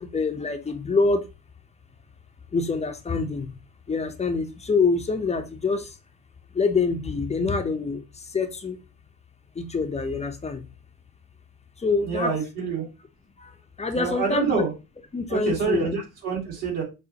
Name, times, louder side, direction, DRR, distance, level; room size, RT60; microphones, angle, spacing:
voice 1, 0.1-1.2 2.5-3.5 3.9-5.9 6.5-8.0 8.3-8.8 9.6-10.6 11.8-12.3 13.4-13.5 13.8-14.6 15.1-15.9, left 4 dB, 15° left, 7 dB, 0.5 m, -25 dB
voice 2, 12.0-12.9 13.9-14.7 15.3-16.8, right 5 dB, 65° right, -1 dB, 2.0 m, -26 dB
5.1 x 2.0 x 2.7 m, 0.27 s
hypercardioid pair, 70°, 46 cm